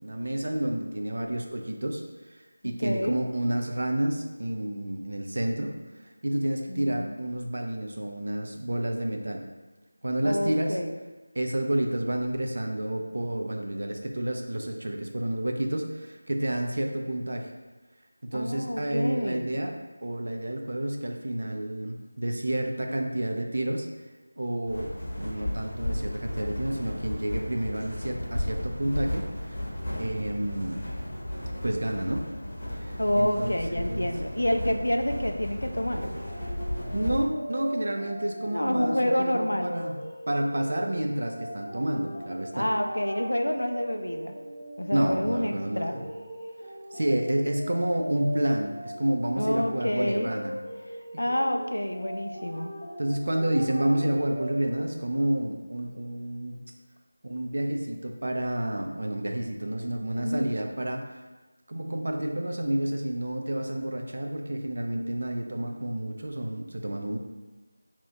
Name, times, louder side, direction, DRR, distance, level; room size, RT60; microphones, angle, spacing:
voice 1, 0.0-2.0 2.3-5.7 6.2-9.5 10.0-10.8 11.3-17.5 18.2-23.9 24.4-29.6 30.0-30.8 31.6-32.3 32.8-34.1 36.9-39.9 40.3-42.7 44.9-46.0 46.9-50.5 53.0-56.6 57.2-61.1 61.7-67.2, right 1 dB, 55° right, 3 dB, 0.4 m, -30 dB
voice 2, 2.6-3.2 6.7-7.1 10.2-10.9 18.3-19.4 33.0-36.1 38.5-39.8 42.5-44.4 44.8-46.0 49.4-50.3 51.2-52.7 60.2-60.5, equal, 75° left, 5 dB, 0.4 m, -28 dB
sound 1, 24.7-37.2, left 1 dB, 35° left, 0.9 m, -34 dB
sound 2, 35.8-54.8, equal, 10° left, 0.5 m, -40 dB
2.8 x 2.3 x 4.2 m, 1.2 s
figure-of-eight pair, 170°, 0 cm